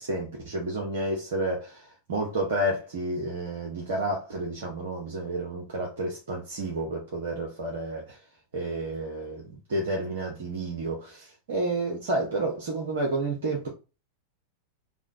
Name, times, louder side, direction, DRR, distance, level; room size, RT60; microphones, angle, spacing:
voice 1, 0.0-8.2 8.5-13.7, right 2 dB, 60° right, 0.9 m, -30 dB
3.6 x 2.2 x 3.6 m
figure-of-eight pair, 90°, 0 cm